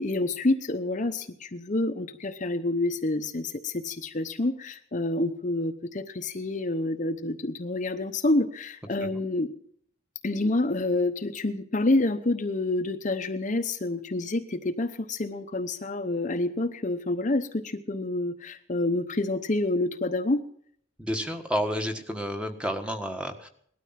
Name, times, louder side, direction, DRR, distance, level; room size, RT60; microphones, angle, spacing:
voice 1, 0.0-9.5 10.2-20.4, left 2 dB, 40° left, 7 dB, 0.9 m, -28 dB
voice 2, 21.0-23.5, equal, 5° right, 5 dB, 1.5 m, -30 dB
19.0 x 12.5 x 5.8 m, 0.64 s
head